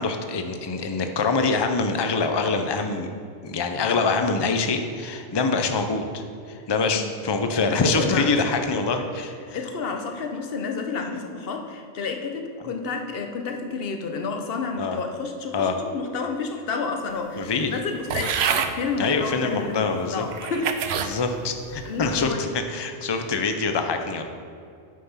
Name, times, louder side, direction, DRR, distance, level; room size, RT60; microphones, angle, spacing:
voice 1, 0.0-3.1 3.4-6.2 6.5-9.6 14.8-15.0 15.5-15.8 17.4-17.7 19.0-20.3 21.0-24.2, left 4 dB, 30° left, 6 dB, 0.5 m, -25 dB
voice 2, 7.5-8.4 9.5-18.4 18.7-20.8 21.8-22.4, left 4 dB, 50° left, 5 dB, 1.0 m, -30 dB
sound 1, 18.1-18.7 19.5-19.6 20.3-21.1 21.7-22.1, right 7 dB, 65° right, 0.8 m, -26 dB
9.5 x 5.8 x 5.7 m, 2.4 s
omnidirectional pair, 1.3 m